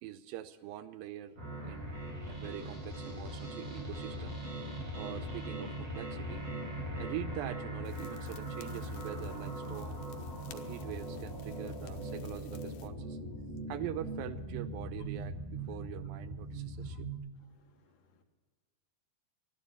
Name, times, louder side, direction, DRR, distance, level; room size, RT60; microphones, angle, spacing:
voice 1, 0.0-4.4 5.0-6.5 7.0-10.0 10.5-13.2 13.7-17.1, right 12 dB, 80° right, 2.2 m, -44 dB
sound 1, 1.4-17.2, right 1 dB, 40° right, 5.1 m, -40 dB
sound 2, 7.8-12.9, left 7 dB, 90° left, 2.8 m, -55 dB
voice 2, 16.5-17.0 17.6-18.2, left 8 dB, 70° left, 2.9 m, -63 dB
12.0 x 12.0 x 8.2 m
omnidirectional pair, 4.3 m